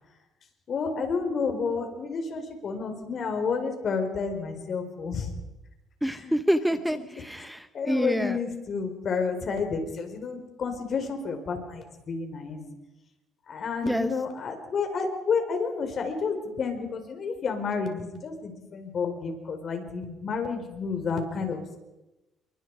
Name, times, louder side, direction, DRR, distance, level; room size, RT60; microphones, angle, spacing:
voice 1, 0.7-5.3 6.2-6.3 7.7-12.6 13.5-21.6, left 5 dB, 50° left, 5 dB, 4.7 m, -30 dB
voice 2, 6.0-8.4 13.8-14.1, equal, ahead, 11 dB, 0.9 m, -27 dB
29.0 x 23.5 x 5.0 m, 1.0 s
cardioid pair, 110°, 0 cm